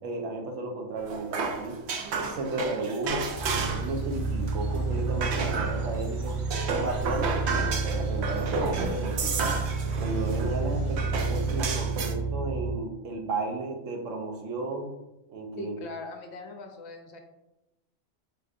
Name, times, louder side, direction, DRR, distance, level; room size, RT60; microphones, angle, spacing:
voice 1, 0.0-1.8 2.3-6.4 6.7-9.6 10.0-14.9 15.3-15.7, right 2 dB, 85° right, 2 dB, 1.1 m, -34 dB
sound 1, 1.0-4.0 4.2-5.9 6.3-10.6 11.0-12.1, right 4 dB, 65° right, 0.8 m, -32 dB
sound 2, 3.0-11.7, equal, 35° right, 0.5 m, -44 dB
sound 3, 3.3-12.7, right 4 dB, 20° right, 1.2 m, -30 dB
voice 2, 15.6-17.2, left 2 dB, 65° left, 4 dB, 0.8 m, -40 dB
4.4 x 3.7 x 2.5 m, 0.94 s
omnidirectional pair, 1.3 m